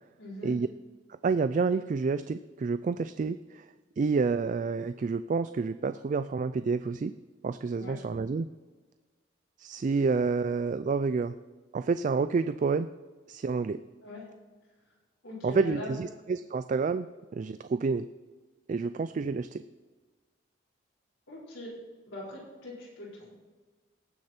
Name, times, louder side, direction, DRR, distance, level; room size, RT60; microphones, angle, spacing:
voice 1, 0.2-0.5 7.8-8.0 14.0-14.3 15.2-16.0 21.3-21.7 22.1-23.3, left 1 dB, 85° left, -7 dB, 4.4 m, -41 dB
voice 2, 1.2-3.7 4.0-7.1 7.4-8.5 9.6-11.3 11.7-12.9 13.3-13.8 15.4-17.1 17.3-18.1 18.7-19.6, right 4 dB, 40° right, 12 dB, 0.3 m, -29 dB
18.5 x 6.5 x 4.4 m, 1.3 s
head